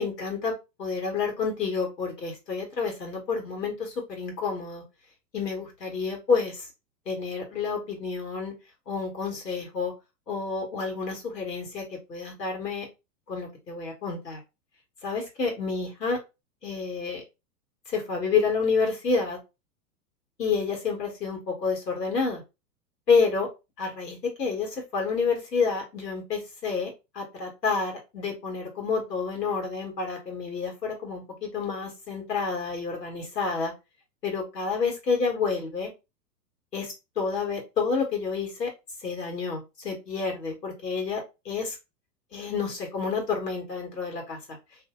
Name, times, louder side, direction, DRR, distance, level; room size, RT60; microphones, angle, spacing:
voice 1, 0.0-4.8 5.3-6.6 7.1-8.5 8.9-9.9 10.3-12.9 13.3-14.4 15.0-16.2 16.6-17.2 17.9-19.4 20.4-22.4 23.1-23.5 23.8-26.9 27.1-33.7 34.2-35.9 36.7-38.7 39.0-41.8 42.3-44.4, left 5 dB, 70° left, 1 dB, 1.5 m, -29 dB
2.7 x 2.5 x 3.7 m, 0.26 s
figure-of-eight pair, 100°, 50 cm